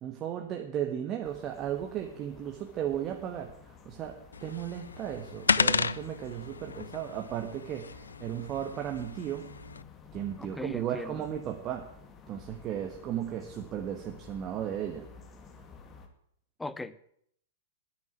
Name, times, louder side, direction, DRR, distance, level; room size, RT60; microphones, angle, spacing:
voice 1, 0.0-9.5 10.1-11.9 12.3-15.1, right 10 dB, 30° right, 1.4 m, -35 dB
sound 1, 1.2-16.1, left 5 dB, 25° left, 2.0 m, -53 dB
sound 2, 4.3-9.8, left 5 dB, 80° left, 0.4 m, -33 dB
voice 2, 10.4-11.3 16.6-17.1, left 2 dB, 5° left, 0.7 m, -39 dB
10.5 x 9.7 x 9.2 m
figure-of-eight pair, 105°, 0 cm